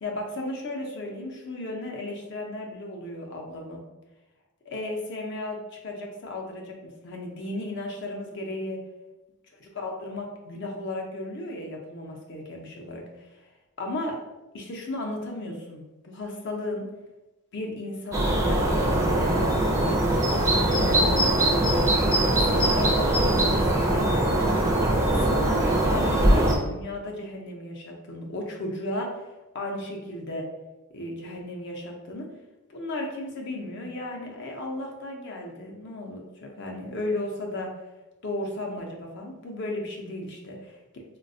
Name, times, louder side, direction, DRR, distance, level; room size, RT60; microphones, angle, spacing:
voice 1, 0.0-3.8 4.7-8.8 9.6-13.0 13.8-14.2 14.5-16.9 17.5-20.1 20.6-21.9 22.4-24.6 25.1-29.2 29.5-30.5 30.9-32.3 32.7-37.7 38.2-40.8, left 1 dB, 55° left, 1 dB, 0.5 m, -35 dB
sound 1, 18.1-26.6, right 1 dB, 15° right, 0.4 m, -22 dB
3.9 x 2.2 x 2.6 m, 1.1 s
head